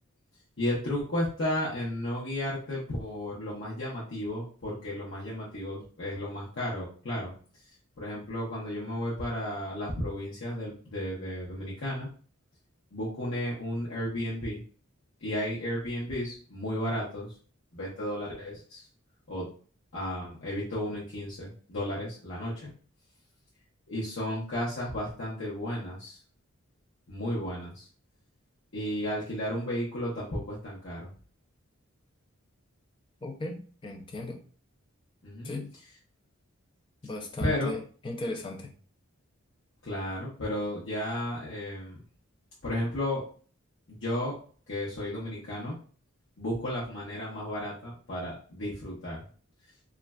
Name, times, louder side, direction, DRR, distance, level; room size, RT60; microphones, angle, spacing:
voice 1, 0.6-7.3 8.0-12.1 12.9-14.6 15.2-17.3 17.7-18.9 19.3-19.5 19.9-22.7 23.9-26.2 27.1-27.9 28.7-31.1 35.2-35.5 37.4-37.7 39.8-42.0 42.6-43.2 44.0-44.4 44.7-45.8 46.4-49.2, left 1 dB, 60° left, -7 dB, 0.7 m, -33 dB
voice 2, 33.2-34.4 35.4-35.8 37.0-38.7, left 2 dB, 25° left, 3 dB, 0.3 m, -37 dB
3.1 x 2.4 x 2.2 m, 0.42 s
head